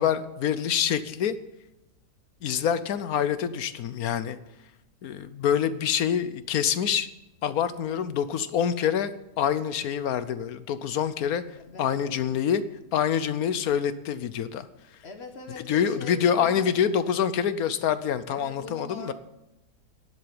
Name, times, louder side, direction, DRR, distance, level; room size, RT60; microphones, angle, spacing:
voice 1, 0.0-1.3 2.4-4.4 5.0-7.1 7.4-9.1 9.4-11.4 11.8-12.6 12.9-14.7 15.7-19.1, left 8 dB, 65° left, 13 dB, 1.1 m, -26 dB
voice 2, 11.6-12.3 15.0-16.7 18.3-19.1, left 4 dB, 40° left, 5 dB, 1.6 m, -42 dB
10.5 x 7.8 x 8.7 m, 0.92 s
omnidirectional pair, 1.8 m